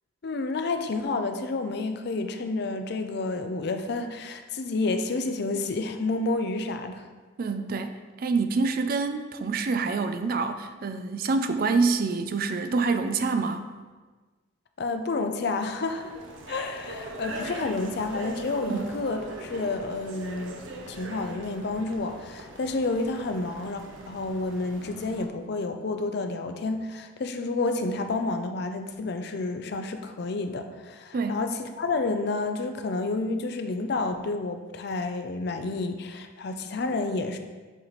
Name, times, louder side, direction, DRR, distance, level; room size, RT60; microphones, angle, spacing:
voice 1, 0.2-7.1 14.8-16.2 16.5-20.6 20.9-37.4, left 3 dB, 55° left, 7 dB, 0.5 m, -30 dB
voice 2, 7.4-13.6 18.7-18.9 31.1-31.4, right 4 dB, 50° right, 9 dB, 0.4 m, -26 dB
sound 1, 15.7-25.3, right 1 dB, 80° right, 0.7 m, -41 dB
7.6 x 3.1 x 4.1 m, 1.3 s
head